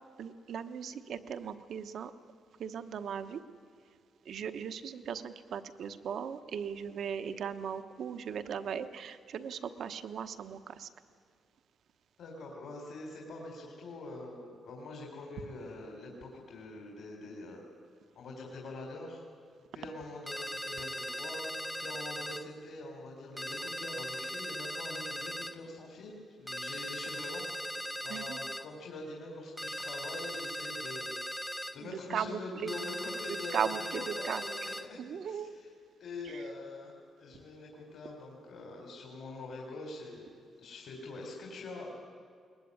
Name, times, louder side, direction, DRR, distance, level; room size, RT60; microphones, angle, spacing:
voice 1, 0.2-2.1 2.6-3.4 4.2-10.9 28.1-28.4 31.8-32.7 33.5-34.4 35.0-35.5 36.2-36.4, right 7 dB, 60° right, 9 dB, 1.1 m, -38 dB
voice 2, 12.2-17.6 18.2-19.2 19.7-21.5 21.8-35.5 36.0-36.9 37.2-40.3 40.6-41.9, left 2 dB, 60° left, 0 dB, 3.8 m, -44 dB
sound 1, 20.3-22.5 23.4-25.6 26.5-28.7 29.6-31.8 32.7-34.9, equal, 5° left, 0.8 m, -39 dB
21.0 x 20.5 x 9.7 m, 2.2 s
cardioid pair, 160°, 0 cm